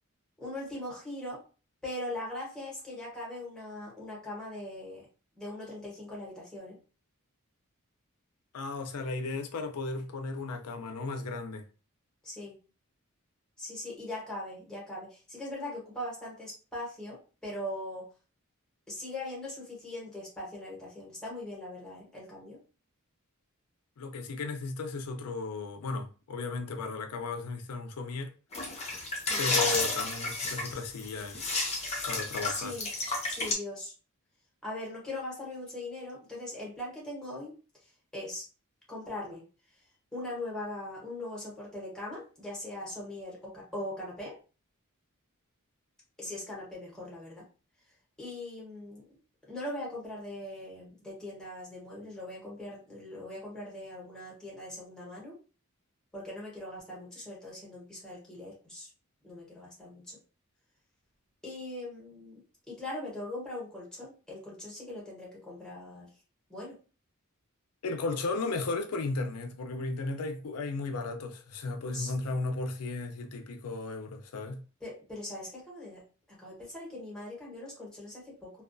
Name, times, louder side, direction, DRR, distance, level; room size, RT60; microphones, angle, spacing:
voice 1, 0.4-1.4 1.8-5.0 5.4-6.8 12.2-12.5 13.6-17.2 17.4-18.0 18.9-22.6 29.3-29.5 32.5-32.9 33.3-33.9 34.6-37.5 38.1-38.4 38.9-39.4 40.1-44.3 46.2-47.4 48.2-49.0 49.5-55.3 56.1-58.9 59.2-60.2 61.4-62.4 62.7-66.1 66.5-66.7 71.9-72.4 74.8-76.0 76.3-78.5, left 1 dB, 5° left, 1.0 m, -40 dB
voice 2, 8.5-11.6 24.0-28.3 29.4-31.4 32.1-32.8 67.8-74.6, left 3 dB, 90° left, 0.5 m, -35 dB
sound 1, 28.5-33.5, left 3 dB, 30° left, 0.7 m, -32 dB
2.3 x 2.3 x 2.5 m
head